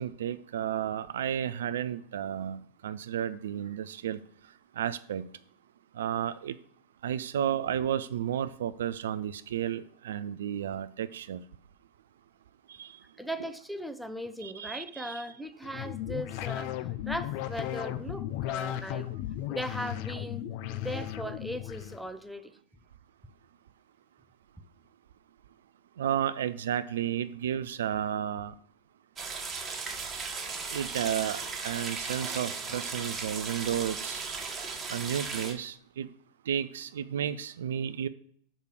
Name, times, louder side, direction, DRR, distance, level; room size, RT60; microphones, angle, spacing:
voice 1, 0.0-4.2 4.8-5.2 6.0-6.6 7.0-11.4 12.7-12.9 14.4-15.3 26.0-28.5 30.7-34.2 34.9-36.1 36.5-38.1, right 9 dB, 60° right, 0.3 m, -32 dB
voice 2, 13.2-19.1 19.5-20.4 20.7-22.6, equal, ahead, 0.6 m, -38 dB
sound 1, 15.6-22.0, left 12 dB, 45° left, 0.5 m, -35 dB
sound 2, 29.2-35.5, right 4 dB, 20° right, 1.4 m, -36 dB
6.5 x 4.9 x 6.1 m
figure-of-eight pair, 90°, 0 cm